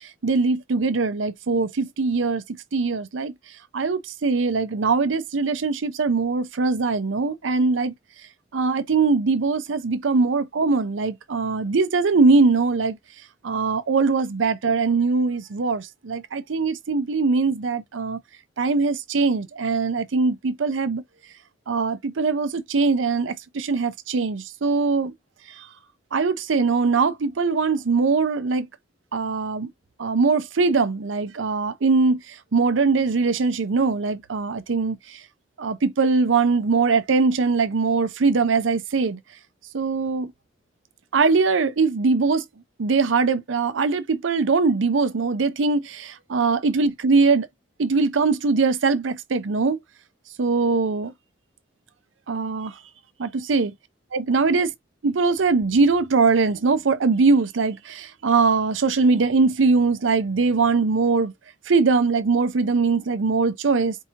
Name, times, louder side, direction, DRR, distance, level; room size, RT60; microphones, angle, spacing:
voice 1, 0.2-2.4 2.7-3.3 3.7-7.9 8.5-13.0 13.4-18.2 18.6-21.0 21.7-25.1 26.1-28.7 29.1-29.7 30.0-32.2 32.5-35.0 35.6-39.2 39.7-40.3 41.1-42.4 42.8-47.5 47.8-49.8 50.4-51.1 52.3-52.7 53.2-53.7 54.1-54.7 55.0-61.3 61.7-64.0, right 4 dB, 85° right, 0.6 m, -21 dB
4.6 x 2.8 x 2.9 m
head